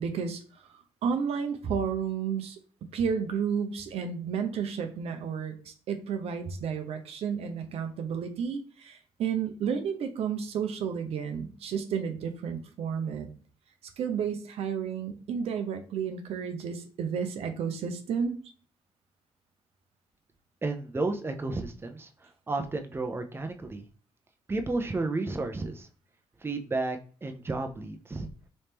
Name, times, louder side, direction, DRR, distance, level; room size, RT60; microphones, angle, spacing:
voice 1, 0.0-2.6 2.9-13.3 14.0-18.4, right 7 dB, 75° right, 6 dB, 0.6 m, -32 dB
voice 2, 20.6-22.1 22.5-23.8 24.5-25.9 26.4-28.3, right 3 dB, 20° right, 6 dB, 0.6 m, -32 dB
3.1 x 2.7 x 3.4 m, 0.42 s
supercardioid pair, 60°, 11 cm